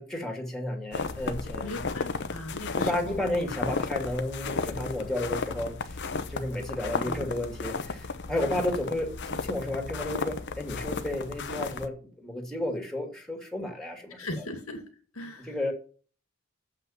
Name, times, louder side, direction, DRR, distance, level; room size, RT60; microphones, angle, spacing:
voice 1, 0.0-1.8 2.8-14.3 15.5-15.7, left 1 dB, 5° left, 4 dB, 2.1 m, -32 dB
sound 1, 0.9-11.9, left 4 dB, 55° left, 0.9 m, -34 dB
voice 2, 1.6-3.2 7.0-7.3 14.2-14.9 15.1-15.6, left 1 dB, 90° left, 6 dB, 2.3 m, -38 dB
7.9 x 5.7 x 7.0 m, 0.39 s
head